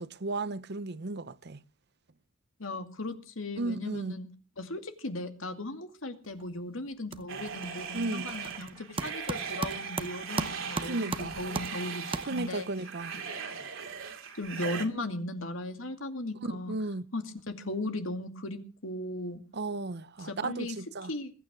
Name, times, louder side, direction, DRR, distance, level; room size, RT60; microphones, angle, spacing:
voice 1, 0.0-1.6 3.6-4.2 7.9-8.3 10.8-11.3 12.3-13.1 16.4-17.1 19.5-21.1, right 2 dB, 55° right, 0.9 m, -34 dB
voice 2, 2.6-4.3 4.6-12.7 13.3-13.9 14.3-16.7 17.1-19.4 20.2-20.8 21.1-21.3, left 2 dB, 75° left, 2.4 m, -37 dB
sound 1, 6.2-6.6 6.9-12.8, right 3 dB, 25° right, 0.8 m, -38 dB
sound 2, 7.3-14.9, right 6 dB, 75° right, 2.8 m, -39 dB
21.0 x 9.3 x 6.1 m
head